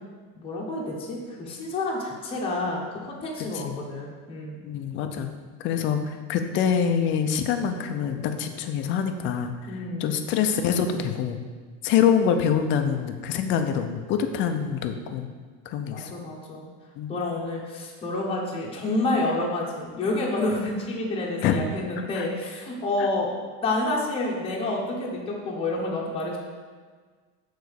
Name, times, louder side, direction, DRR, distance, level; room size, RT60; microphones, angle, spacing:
voice 1, 0.3-4.6 9.7-10.2 15.9-16.7 17.1-23.3 23.6-26.4, left 2 dB, 15° left, -3 dB, 1.0 m, -29 dB
voice 2, 4.6-5.3 5.6-9.7 10.0-11.4 11.8-15.3 15.7-16.1 17.0-17.1 21.4-21.6 22.1-22.3 23.0-23.1, left 7 dB, 35° left, 6 dB, 0.5 m, -25 dB
7.0 x 4.1 x 6.4 m, 1.5 s
cardioid pair, 170°, 34 cm